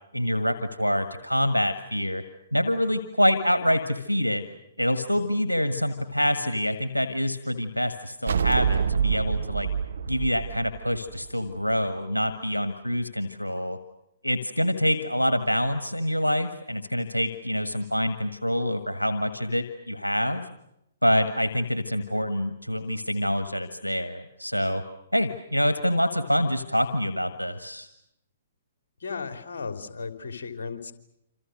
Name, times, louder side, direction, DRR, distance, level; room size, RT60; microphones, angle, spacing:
voice 1, 0.1-2.2 2.5-4.4 4.8-9.7 10.1-13.8 14.2-20.4 21.0-24.8 25.1-27.9, equal, 90° left, 9 dB, 1.7 m, -26 dB
sound 1, 8.3-11.7, right 7 dB, 60° right, 1.6 m, -26 dB
voice 2, 29.0-30.9, left 5 dB, 60° left, 8 dB, 3.3 m, -35 dB
27.5 x 27.5 x 6.5 m, 0.82 s
figure-of-eight pair, 120°, 0 cm